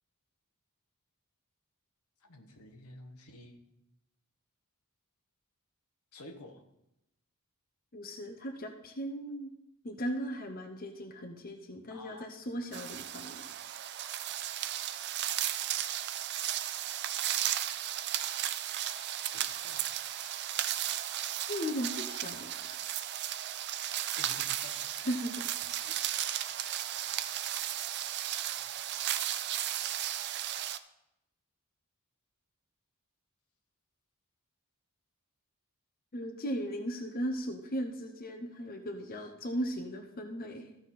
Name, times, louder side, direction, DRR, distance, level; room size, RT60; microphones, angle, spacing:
voice 1, 2.2-3.6 6.1-6.6 11.9-12.3 19.2-19.8 24.1-25.2 25.8-26.7 28.6-28.8, left 2 dB, 80° left, 5 dB, 1.2 m, -52 dB
voice 2, 7.9-9.5 9.8-13.4 21.5-22.8 25.0-25.4 26.9-27.2 36.1-40.8, equal, 40° left, 4 dB, 0.8 m, -37 dB
sound 1, 12.7-30.8, right 12 dB, 50° right, 0.4 m, -35 dB
14.0 x 5.9 x 4.2 m, 0.86 s
head